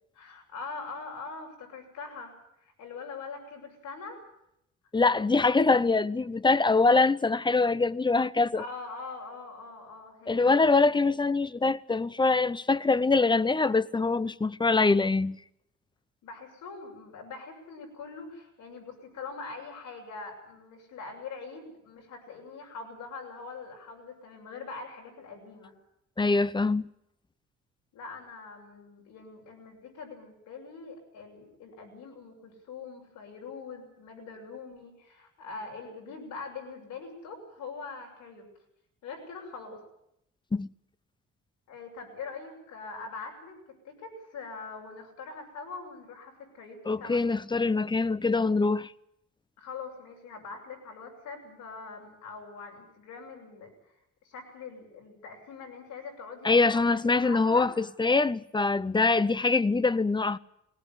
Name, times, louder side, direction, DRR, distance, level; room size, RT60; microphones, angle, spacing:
voice 1, 0.1-2.3 2.6-4.2 8.6-10.7 16.2-25.7 27.9-38.5 39.0-39.8 41.7-43.6 43.8-47.2 49.6-53.7 54.2-57.7, left 4 dB, 85° left, 7.1 m, -43 dB
voice 2, 4.9-8.6 10.3-15.4 26.2-26.8 40.5-40.7 46.9-48.9 56.4-60.4, left 3 dB, 15° left, 0.7 m, -24 dB
19.5 x 18.5 x 9.6 m
cardioid pair, 90°, 30 cm